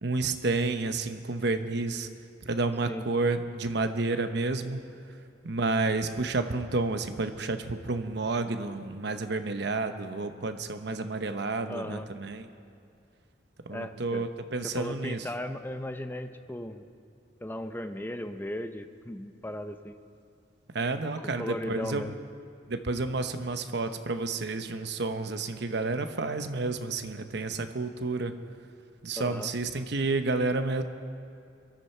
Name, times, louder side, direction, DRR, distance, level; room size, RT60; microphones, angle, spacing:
voice 1, 0.0-2.1 2.5-4.8 5.4-12.5 13.7-15.2 20.7-22.1 22.7-28.3 29.0-30.8, right 3 dB, 65° right, 8 dB, 0.9 m, -30 dB
voice 2, 11.7-12.1 13.7-14.3 14.6-16.9 17.4-20.0 21.2-22.2 29.2-29.5, left 1 dB, 10° left, 9 dB, 0.6 m, -37 dB
23.0 x 13.0 x 4.4 m, 2.5 s
head